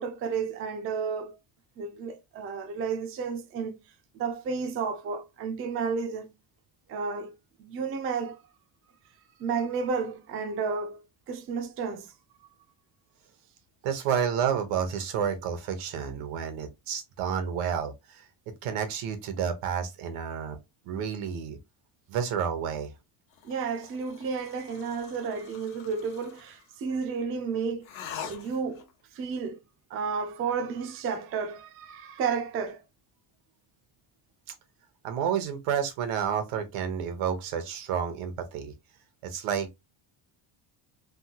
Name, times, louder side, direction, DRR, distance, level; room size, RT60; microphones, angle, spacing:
voice 1, 0.0-1.4 1.8-3.8 4.1-6.3 6.9-7.3 7.6-8.4 9.4-11.0 11.3-12.1 23.4-27.9 28.2-28.8 29.1-29.6 29.9-32.8 39.4-39.5, right 5 dB, 30° right, 0.4 m, -32 dB
voice 2, 13.8-18.2 18.6-20.6 20.9-21.6 22.1-22.9 35.0-38.7 39.2-39.8, right 8 dB, 85° right, 1.0 m, -30 dB
sound 1, 23.3-26.7 27.8-28.9, left 8 dB, 65° left, 1.0 m, -44 dB
3.5 x 2.2 x 2.8 m
cardioid pair, 165°, 50 cm